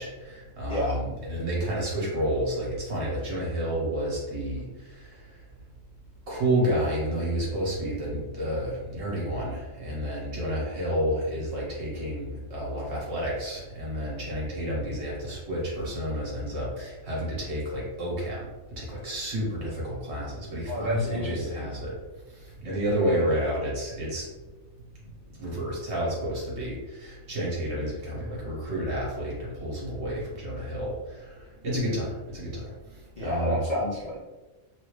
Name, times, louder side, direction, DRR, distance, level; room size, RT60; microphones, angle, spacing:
voice 1, 0.0-4.7 5.0-5.1 6.3-18.4 18.8-21.9 22.6-24.2 25.3-31.3 31.6-32.6 33.2-33.6, equal, 55° right, -5 dB, 1.5 m, -30 dB
voice 2, 20.7-21.7 23.1-23.3 33.2-34.2, left 1 dB, 40° left, -8 dB, 0.6 m, -30 dB
3.2 x 2.8 x 3.1 m, 1.2 s
omnidirectional pair, 1.4 m